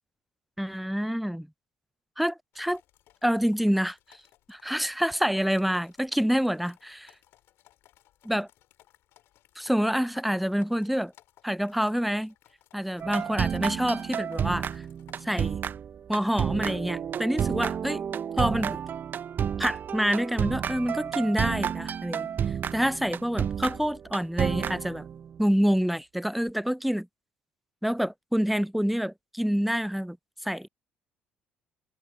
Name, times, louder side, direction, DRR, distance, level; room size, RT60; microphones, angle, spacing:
voice 1, 0.6-1.5 2.2-2.8 3.2-4.0 4.5-7.1 8.2-8.5 9.6-11.1 11.4-12.3 12.7-14.8 15.2-15.6 16.1-18.0 18.4-18.8 19.6-22.3 22.7-25.1 25.4-27.1 27.8-30.2 30.4-30.7, equal, ahead, 0.6 m, -27 dB
sound 1, 2.5-15.6, left 14 dB, 65° left, 7.3 m, -60 dB
sound 2, 13.0-25.3, right 8 dB, 45° right, 0.9 m, -31 dB
hypercardioid pair, 55°, 4 cm